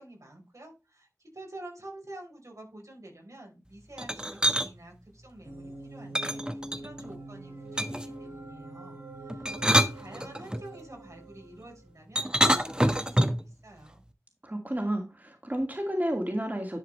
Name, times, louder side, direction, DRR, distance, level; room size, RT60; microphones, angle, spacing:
voice 1, 0.0-14.0, right 1 dB, 80° right, 4.4 m, -48 dB
sound 1, 4.0-4.7 6.1-7.1 7.8-8.2 9.3-10.6 12.2-13.5, equal, 15° right, 1.1 m, -26 dB
sound 2, 5.4-12.0, right 1 dB, 55° right, 2.6 m, -44 dB
voice 2, 14.4-16.8, right 1 dB, 35° right, 2.2 m, -31 dB
11.0 x 5.0 x 3.2 m
wide cardioid pair, 40°, 5 cm